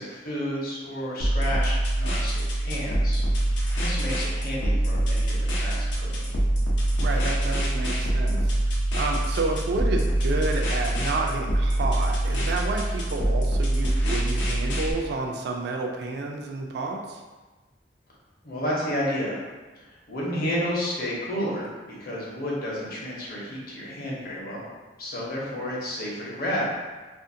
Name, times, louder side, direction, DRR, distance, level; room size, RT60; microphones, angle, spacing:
voice 1, 0.0-3.2 3.7-6.3 18.4-19.4 19.8-21.7 22.0-24.7 25.0-26.6, equal, 55° left, -5 dB, 0.8 m, -31 dB
sound 1, 1.2-14.9, right 1 dB, 85° left, 0.6 m, -25 dB
voice 2, 7.0-8.5 8.9-17.2, right 3 dB, 65° right, 2 dB, 0.3 m, -30 dB
2.5 x 2.4 x 2.6 m, 1.2 s
head